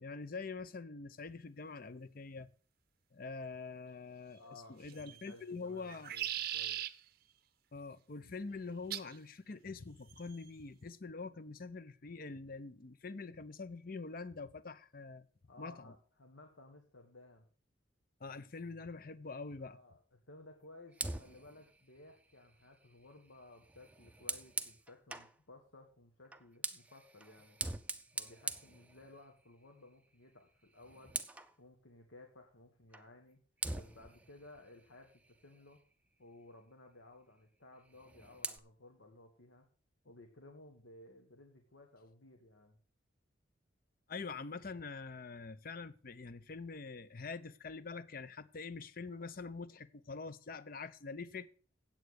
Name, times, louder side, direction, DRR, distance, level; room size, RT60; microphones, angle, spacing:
voice 1, 0.0-2.5 3.1-6.1 7.7-15.3 15.6-15.9 18.2-19.8 44.1-51.5, left 4 dB, 45° left, 0.6 m, -45 dB
voice 2, 4.4-6.8 15.5-17.5 19.6-27.6 28.1-31.2 31.6-33.4 33.7-35.8 36.2-39.7 40.0-42.8, left 2 dB, 75° left, 1.5 m, -58 dB
sound 1, 4.9-5.3 5.8-6.9 8.9-9.2 10.1-10.5, right 12 dB, 50° right, 0.6 m, -39 dB
Fire, 20.9-25.4 26.3-29.5 29.9-30.1 30.5-31.6 32.9-33.1 33.6-35.9 37.8-38.6, right 3 dB, 5° right, 0.5 m, -44 dB
9.1 x 8.1 x 6.3 m
head